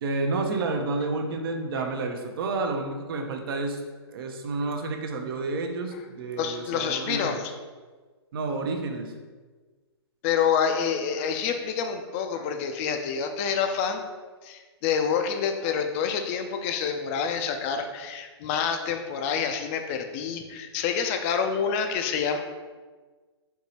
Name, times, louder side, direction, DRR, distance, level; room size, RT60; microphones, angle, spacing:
voice 1, 0.0-3.8 4.1-7.4 8.3-9.1, right 3 dB, 55° right, 4 dB, 0.6 m, -30 dB
voice 2, 6.4-7.5 10.2-14.0 14.4-22.4, left 7 dB, 30° left, 6 dB, 0.4 m, -27 dB
4.5 x 2.9 x 2.8 m, 1.4 s
hypercardioid pair, 130°, 14 cm